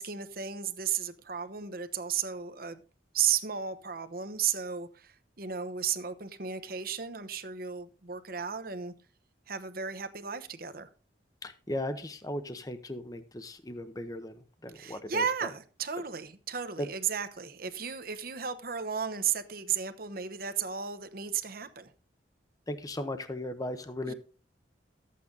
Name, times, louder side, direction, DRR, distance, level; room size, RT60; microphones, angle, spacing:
voice 1, 0.0-2.8 3.1-8.9 9.5-10.9 14.7-21.9 24.1-24.2, right 7 dB, 55° right, 1.0 m, -34 dB
voice 2, 11.4-15.2 16.8-16.9 22.7-24.1, left 1 dB, 20° left, 0.7 m, -37 dB
13.0 x 8.5 x 3.9 m
head